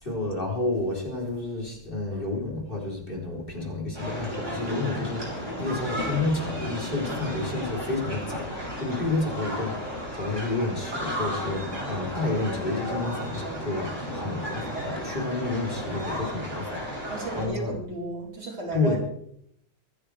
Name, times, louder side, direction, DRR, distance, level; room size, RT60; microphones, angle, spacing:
voice 1, 0.0-17.8 18.7-19.0, left 2 dB, 25° left, -2 dB, 4.1 m, -30 dB
sound 1, 3.9-17.5, equal, 40° right, 5.9 m, -33 dB
voice 2, 17.1-19.0, right 1 dB, 90° right, -3 dB, 5.1 m, -33 dB
25.0 x 10.0 x 3.4 m, 0.72 s
omnidirectional pair, 2.0 m